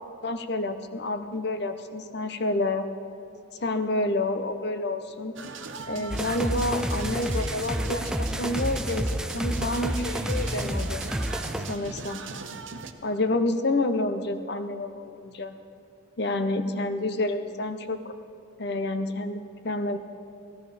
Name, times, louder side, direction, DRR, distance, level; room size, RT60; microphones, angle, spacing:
voice 1, 0.2-2.9 3.6-5.3 5.9-9.1 9.3-11.0 11.7-12.2 13.0-15.5 16.2-18.1 18.6-20.0, left 2 dB, 60° left, 9 dB, 0.8 m, -29 dB
sound 1, 5.4-12.9, right 4 dB, 80° right, 0.9 m, -39 dB
sound 2, 6.1-11.8, equal, 5° right, 0.3 m, -30 dB
17.5 x 15.0 x 4.2 m, 2.5 s
head